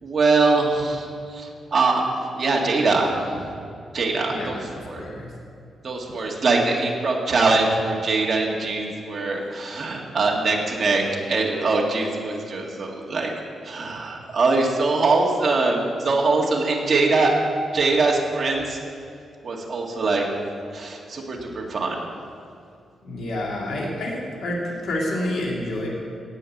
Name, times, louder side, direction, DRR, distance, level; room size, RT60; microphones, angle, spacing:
voice 1, 0.0-3.5 3.9-4.6 4.9-5.0 5.8-11.0 11.3-13.3 13.6-17.4 17.7-18.8 19.4-20.3 20.7-22.0, right 3 dB, 35° right, -2 dB, 2.0 m, -22 dB
voice 2, 4.3-5.3 23.0-25.9, left 1 dB, 70° left, -3 dB, 2.6 m, -29 dB
17.0 x 5.7 x 8.4 m, 2.4 s
wide cardioid pair, 170°, 0 cm